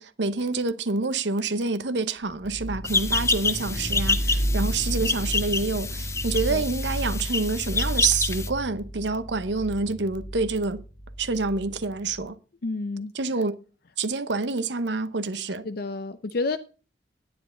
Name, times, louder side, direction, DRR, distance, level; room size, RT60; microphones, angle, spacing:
voice 1, 0.0-10.8 11.2-12.4 13.2-13.5 14.0-15.6, right 3 dB, 75° right, 0.9 m, -27 dB
sound 1, 2.4-12.3, right 1 dB, 30° left, 1.7 m, -32 dB
sound 2, 2.8-8.5, left 4 dB, 15° left, 0.6 m, -28 dB
voice 2, 6.2-6.7 12.6-13.1 15.6-16.6, left 3 dB, 60° left, 0.5 m, -30 dB
10.0 x 9.6 x 3.9 m
head